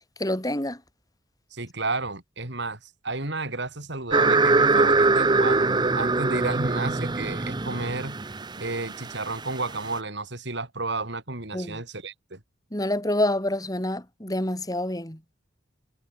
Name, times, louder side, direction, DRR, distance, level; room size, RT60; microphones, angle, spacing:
voice 1, 0.2-0.8 11.5-11.8 12.7-15.2, left 1 dB, 20° left, 4.6 m, -27 dB
voice 2, 1.5-8.2 8.6-12.4, right 3 dB, 60° right, 3.6 m, -32 dB
sound 1, 4.1-9.9, right 3 dB, 20° right, 0.7 m, -23 dB
head